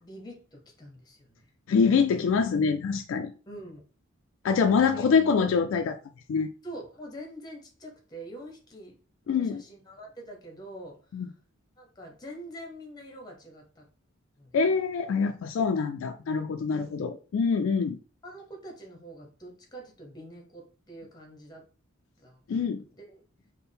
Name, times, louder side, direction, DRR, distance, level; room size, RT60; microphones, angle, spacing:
voice 1, 0.0-1.5 3.5-3.8 4.7-5.1 6.6-9.0 9.2-11.0 11.8-13.8 14.4-14.6 16.7-17.1 18.2-21.6 22.2-23.2, right 1 dB, 20° left, 0.8 m, -45 dB
voice 2, 1.7-3.3 4.4-6.0 6.3-6.5 9.3-9.6 11.1-11.3 14.5-18.0 22.5-22.8, left 5 dB, 70° left, 0.3 m, -25 dB
4.3 x 2.1 x 3.4 m
head